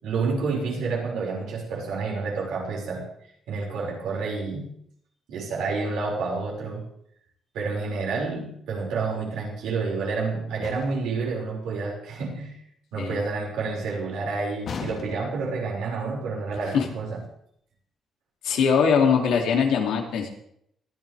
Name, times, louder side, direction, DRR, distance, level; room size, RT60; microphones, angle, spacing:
voice 1, 0.0-3.0 3.5-4.7 5.3-6.9 7.5-12.6 12.9-17.2, right 4 dB, 85° right, -3 dB, 5.8 m, -29 dB
sound 1, 10.6-11.2 14.7-15.5, left 5 dB, 55° left, 1.8 m, -36 dB
voice 2, 18.4-20.3, left 6 dB, 85° left, 2 dB, 2.8 m, -21 dB
21.0 x 13.0 x 3.5 m, 0.71 s
cardioid pair, 90°, 0 cm